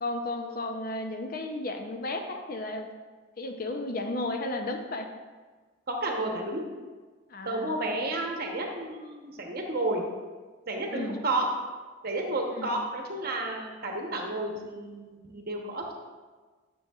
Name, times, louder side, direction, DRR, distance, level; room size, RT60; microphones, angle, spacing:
voice 1, 0.0-2.9 3.4-5.1 7.3-7.8 10.9-11.2 12.6-12.7, left 2 dB, 40° left, 5 dB, 0.6 m, -33 dB
voice 2, 5.9-6.6 7.4-10.1 10.7-11.5 12.0-15.9, right 2 dB, 45° right, 1 dB, 1.0 m, -31 dB
10.0 x 6.2 x 2.4 m, 1.4 s
head